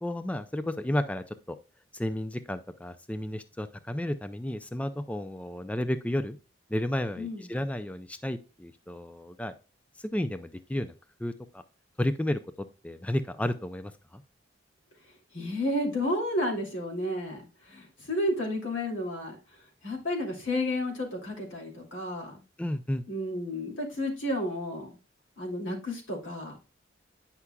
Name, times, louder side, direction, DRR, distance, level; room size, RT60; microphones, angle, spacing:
voice 1, 0.0-1.6 1.9-6.4 6.7-9.5 10.0-10.9 11.2-11.6 12.0-14.2 22.6-23.0, left 1 dB, 5° left, 10 dB, 0.3 m, -32 dB
voice 2, 15.3-19.4 19.8-22.4 23.1-24.9 25.4-26.6, left 1 dB, 90° left, 0 dB, 2.8 m, -31 dB
9.6 x 5.8 x 2.3 m, 0.33 s
head